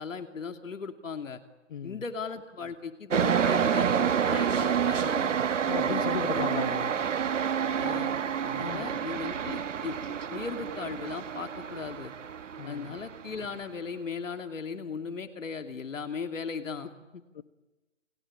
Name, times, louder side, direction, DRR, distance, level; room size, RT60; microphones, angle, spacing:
voice 1, 0.0-1.4 1.8-5.4 5.9-6.5 7.8-8.2 8.4-10.0 10.3-12.1 12.6-17.2, left 5 dB, 85° left, 2.8 m, -37 dB
voice 2, 1.7-2.0 5.7-7.0 8.6-8.9 12.6-12.9 17.3-17.4, left 9 dB, 40° left, 1.3 m, -36 dB
sound 1, 3.1-13.5, right 8 dB, 70° right, 1.5 m, -28 dB
29.5 x 22.5 x 8.8 m
hypercardioid pair, 160°, 38 cm